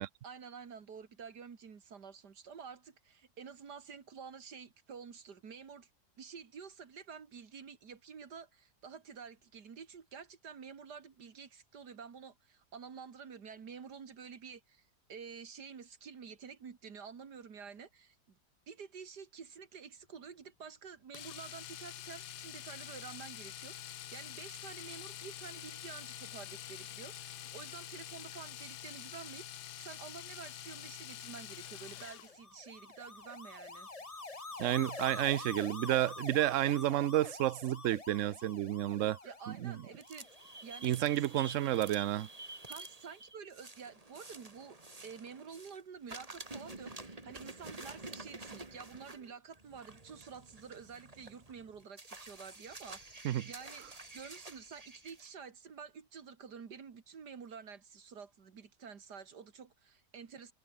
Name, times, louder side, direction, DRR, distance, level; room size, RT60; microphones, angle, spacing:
voice 1, 0.2-5.9 6.2-18.4 18.7-33.9 39.2-40.3 40.6-41.2 42.5-44.8 45.0-60.5, right 6 dB, 80° right, 2.5 m, -50 dB
Domestic sounds home sounds, 21.1-32.4 34.5-34.7 34.9-35.0, left 11 dB, 80° left, 1.5 m, -47 dB
sound 1, 31.9-41.2, left 3 dB, 20° left, 1.6 m, -47 dB
voice 2, 34.6-39.2 39.5-39.8 40.8-42.3 53.2-53.5, right 13 dB, 60° right, 0.9 m, -31 dB
sound 2, 39.9-45.8 46.1-55.3, right 2 dB, 20° right, 2.5 m, -50 dB
omnidirectional pair, 1.7 m